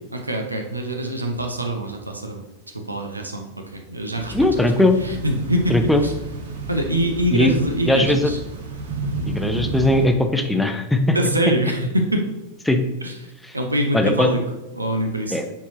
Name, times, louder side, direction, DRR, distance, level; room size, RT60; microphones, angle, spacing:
voice 1, 0.1-2.4 2.9-4.3 5.0-5.7 6.0-6.1 6.7-8.4 11.1-12.3 13.0-13.1 13.5-14.4 14.8-15.4, right 1 dB, 80° right, 3 dB, 0.7 m, -24 dB
sound 1, 4.1-10.1, right 3 dB, 65° right, 1.0 m, -31 dB
voice 2, 4.3-5.0 5.7-6.0 7.3-7.5 7.8-8.3 9.3-11.2 12.7-12.8 13.4-13.6 13.9-14.3 15.3-15.4, left 1 dB, 5° left, 6 dB, 0.6 m, -19 dB
7.0 x 4.7 x 2.9 m, 0.97 s
figure-of-eight pair, 90°, 0 cm